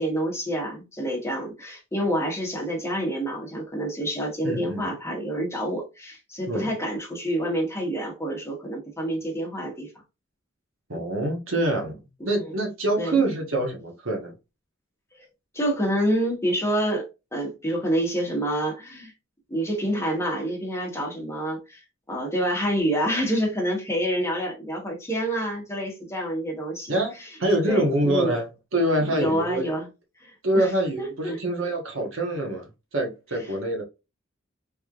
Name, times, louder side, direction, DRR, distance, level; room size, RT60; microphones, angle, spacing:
voice 1, 0.0-9.9 12.2-12.5 13.0-13.2 15.5-17.1 17.3-19.1 19.5-21.8 22.1-27.3 27.6-28.4 29.1-29.9 30.2-30.7 31.0-31.4, equal, 15° left, 1.1 m, -27 dB
voice 2, 4.4-4.8 6.5-6.7 10.9-12.0 12.3-14.3 26.9-28.5 28.7-29.6 30.4-33.8, right 1 dB, 80° right, 1.2 m, -25 dB
3.5 x 3.2 x 2.4 m
head